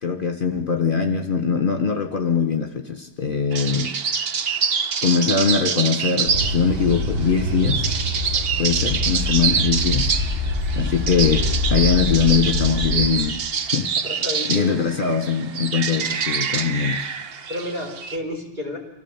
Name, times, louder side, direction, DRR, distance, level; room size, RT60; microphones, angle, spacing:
voice 1, 0.0-3.9 5.0-8.0 8.6-10.4 10.8-13.4 13.7-14.1 14.5-17.0, left 6 dB, 45° left, 5 dB, 1.4 m, -22 dB
sound 1, 3.5-18.2, right 6 dB, 55° right, 1.1 m, -26 dB
sound 2, 6.3-13.1, left 2 dB, 90° right, 8.5 m, -25 dB
voice 2, 14.0-15.1 17.5-18.8, left 1 dB, 40° right, -1 dB, 4.6 m, -31 dB
25.0 x 16.0 x 7.3 m, 1.0 s
omnidirectional pair, 1.2 m